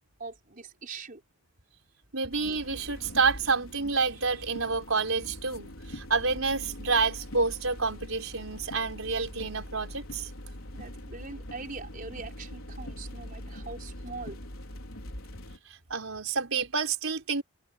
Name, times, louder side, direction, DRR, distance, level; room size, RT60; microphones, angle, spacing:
voice 1, 0.2-1.2 10.7-14.4, right 4 dB, 40° right, 4.7 m, -42 dB
voice 2, 2.1-10.3 15.6-17.4, right 4 dB, 85° right, 4.6 m, -29 dB
sound 1, 2.3-15.6, left 1 dB, 85° left, 4.2 m, -43 dB
head